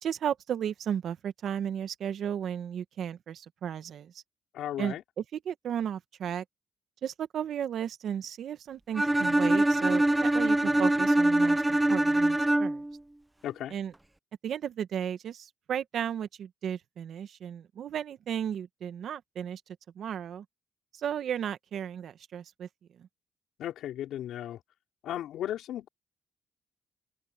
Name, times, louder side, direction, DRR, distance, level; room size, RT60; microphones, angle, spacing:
voice 1, 0.0-4.2 4.8-6.4 7.0-12.8 13.7-13.9 14.4-20.4 20.9-22.7 23.0-23.1, right 9 dB, 65° right, 1.4 m, -34 dB
voice 2, 4.5-5.0 13.4-13.7 23.6-24.6 25.0-25.9, left 12 dB, 80° left, 4.9 m, -35 dB
Bowed string instrument, 9.0-12.9, right 1 dB, 10° right, 0.5 m, -24 dB
cardioid pair, 90°, 0 cm